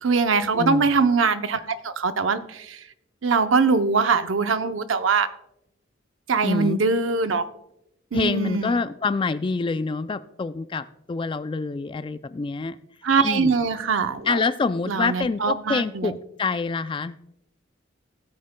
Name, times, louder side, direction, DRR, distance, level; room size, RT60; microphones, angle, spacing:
voice 1, 0.0-2.8 3.2-5.3 6.3-7.4 8.1-8.8 13.0-14.4 14.9-16.2, right 4 dB, 75° right, 10 dB, 0.7 m, -22 dB
voice 2, 0.5-0.9 6.4-6.8 8.1-12.8 13.2-13.5 14.3-17.2, left 4 dB, 25° left, 14 dB, 0.3 m, -26 dB
16.5 x 8.6 x 2.2 m, 0.80 s
head